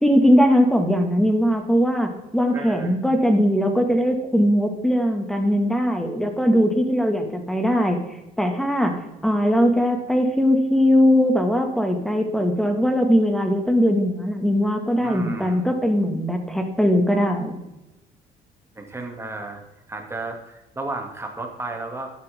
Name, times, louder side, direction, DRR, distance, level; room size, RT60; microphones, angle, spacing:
voice 1, 0.0-8.0 8.4-17.5, equal, ahead, 4 dB, 2.0 m, -20 dB
voice 2, 2.5-2.9 15.0-15.6 18.7-19.6 19.9-22.1, right 2 dB, 15° right, 2 dB, 2.5 m, -33 dB
12.0 x 11.5 x 3.7 m, 0.97 s
cardioid pair, 110°, 17 cm